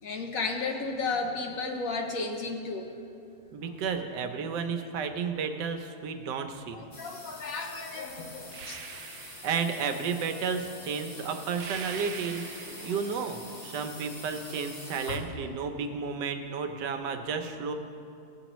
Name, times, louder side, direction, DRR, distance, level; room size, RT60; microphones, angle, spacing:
voice 1, 0.0-2.9 6.7-8.8 11.2-11.3 15.1-15.2, left 3 dB, 60° left, 2 dB, 1.1 m, -33 dB
voice 2, 3.5-6.8 8.9-9.0 9.4-17.7, right 5 dB, 85° right, 6 dB, 1.3 m, -32 dB
sound 1, 6.9-15.2, left 2 dB, 40° left, 1.3 m, -45 dB
sound 2, 8.5-10.1 11.5-13.6, right 6 dB, 65° right, 0.9 m, -44 dB
17.0 x 7.6 x 3.0 m, 2.6 s
omnidirectional pair, 1.8 m